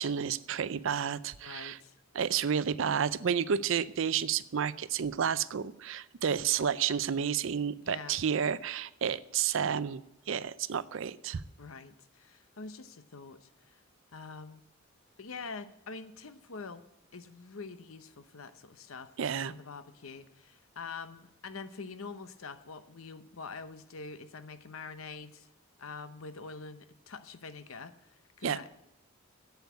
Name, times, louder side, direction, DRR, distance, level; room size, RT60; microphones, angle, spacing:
voice 1, 0.0-1.8 2.1-11.4 19.2-19.5 28.4-28.6, right 7 dB, 65° right, 17 dB, 0.5 m, -31 dB
voice 2, 1.4-2.0 7.8-8.2 11.6-13.8 14.1-14.6 15.2-16.8 17.1-19.1 19.4-25.5 25.8-28.9, left 4 dB, 75° left, 11 dB, 0.8 m, -45 dB
8.2 x 8.2 x 8.1 m, 0.90 s
head